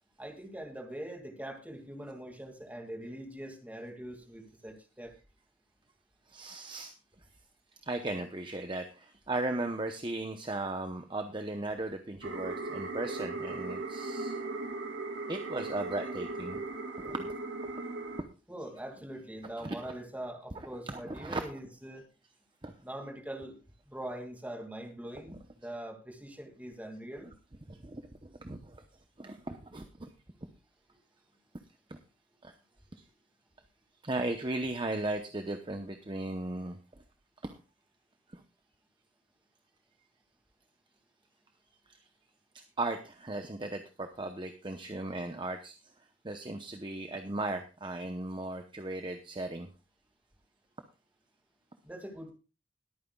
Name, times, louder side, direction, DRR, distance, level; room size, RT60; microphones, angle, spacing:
voice 1, 0.2-5.1 18.5-22.0 22.8-23.6 23.9-27.3 51.8-52.3, right 1 dB, 10° right, 3 dB, 2.2 m, -43 dB
voice 2, 6.3-6.9 7.8-14.4 15.3-16.6 17.0-17.3 19.6-19.8 20.5-21.4 22.6-22.7 27.7-28.0 28.4-28.8 29.2-30.1 31.9-32.0 32.4-32.5 34.0-36.8 37.4-37.6 38.3-38.4 41.9-42.0 42.8-45.8 46.2-49.7, right 2 dB, 25° right, 6 dB, 0.8 m, -36 dB
sound 1, 12.2-18.2, right 3 dB, 75° right, 2.7 m, -38 dB
21.0 x 9.2 x 2.3 m, 0.32 s
head